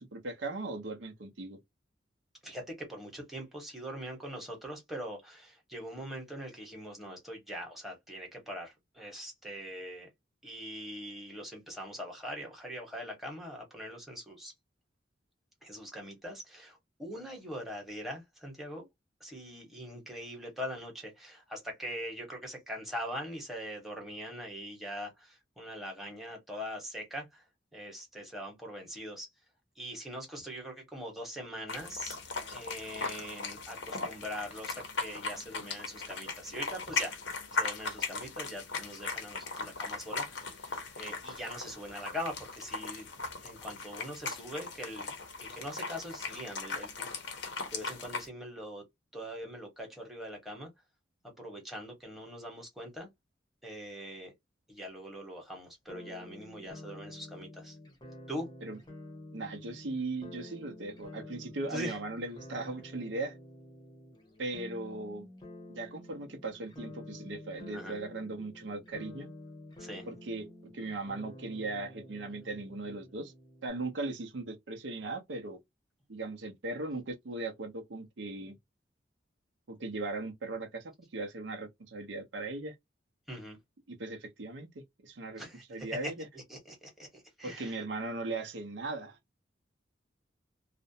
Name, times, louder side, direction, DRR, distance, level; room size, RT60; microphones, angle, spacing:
voice 1, 0.0-1.6 58.6-58.8 59.3-63.4 64.4-65.3 65.7-69.3 70.1-70.5 70.7-73.3 73.6-75.6 76.1-78.6 79.7-82.7 83.9-85.4 85.7-86.3 87.4-89.2, right 2 dB, 80° right, 0.6 m, -38 dB
voice 2, 2.4-10.1 10.4-14.5 15.6-18.9 19.2-27.4 27.7-29.3 29.8-32.2 32.5-37.2 37.5-43.1 43.4-47.1 47.7-48.8 49.1-50.7 51.2-53.1 53.6-54.3 54.7-57.8 58.3-58.5 61.7-62.0 67.7-68.0 69.8-70.1 83.3-83.6 85.4-87.8, equal, ahead, 0.9 m, -42 dB
sound 1, 31.7-48.3, left 4 dB, 75° left, 0.7 m, -38 dB
sound 2, 55.9-73.7, left 1 dB, 25° left, 0.7 m, -49 dB
2.4 x 2.1 x 2.6 m
head